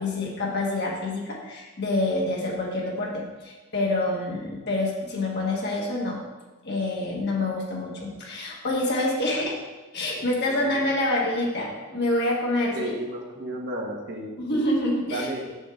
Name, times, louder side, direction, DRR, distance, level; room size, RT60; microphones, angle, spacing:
voice 1, 0.0-6.2 6.6-9.5 9.9-12.9 14.4-15.3, left 2 dB, 50° left, -3 dB, 1.2 m, -27 dB
voice 2, 10.5-10.8 12.7-14.3 15.1-15.5, right 1 dB, 50° right, 0 dB, 1.1 m, -33 dB
6.4 x 6.1 x 3.5 m, 1.2 s
head